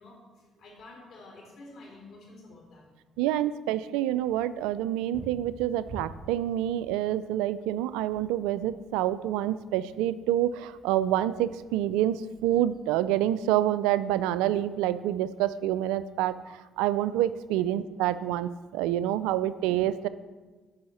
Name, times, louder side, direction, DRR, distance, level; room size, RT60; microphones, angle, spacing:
voice 1, 0.0-2.9 17.5-17.6, left 2 dB, 65° left, 0 dB, 3.7 m, -50 dB
voice 2, 3.2-20.1, right 12 dB, 80° right, 16 dB, 0.4 m, -27 dB
sound 1, 4.2-11.8, right 2 dB, 25° left, 4.0 m, -50 dB
9.6 x 5.6 x 7.7 m, 1.3 s
hypercardioid pair, 55°, 0 cm